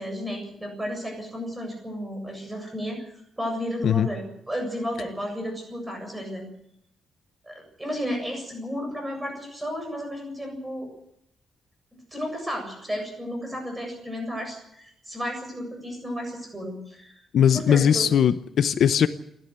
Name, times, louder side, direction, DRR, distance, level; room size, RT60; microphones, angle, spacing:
voice 1, 0.0-6.4 7.5-10.9 11.9-17.2 17.5-18.0, equal, 10° right, 2 dB, 7.5 m, -33 dB
voice 2, 17.3-19.1, left 8 dB, 60° left, 11 dB, 0.8 m, -19 dB
28.5 x 12.0 x 8.2 m, 0.78 s
wide cardioid pair, 180°, 0 cm